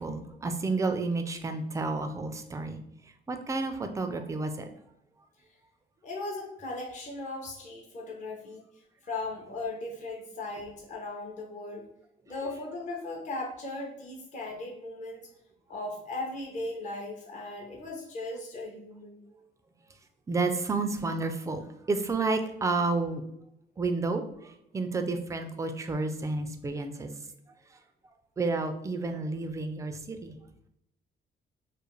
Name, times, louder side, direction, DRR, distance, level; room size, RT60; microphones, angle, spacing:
voice 1, 0.0-2.8 3.3-4.7 20.3-23.2 23.8-27.1 27.7-27.8 28.4-30.4, right 3 dB, 15° right, 7 dB, 0.3 m, -31 dB
voice 2, 6.0-8.6 9.0-11.9 12.3-15.3 15.7-19.2, left 2 dB, 40° left, -1 dB, 0.6 m, -37 dB
2.4 x 2.1 x 3.1 m, 0.78 s
cardioid pair, 90°, 20 cm